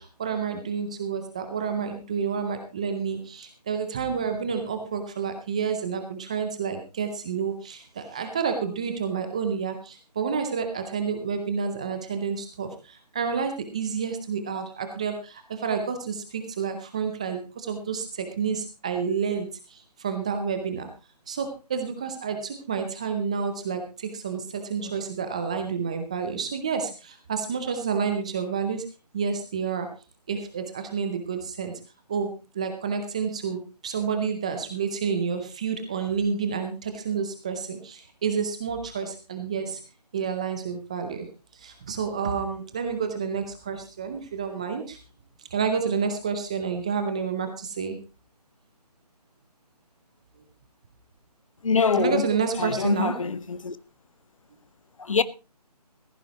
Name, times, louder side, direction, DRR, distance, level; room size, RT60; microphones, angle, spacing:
voice 1, 0.0-20.9 21.3-28.9 29.1-29.9 30.3-31.7 32.1-39.8 40.1-41.3 41.5-45.0 45.5-48.0 51.9-53.2, right 6 dB, 10° right, 0.5 m, -29 dB
voice 2, 51.6-52.3 52.6-53.7 55.0-55.2, left 5 dB, 55° left, 0.9 m, -24 dB
15.0 x 14.0 x 3.0 m
figure-of-eight pair, 160°, 21 cm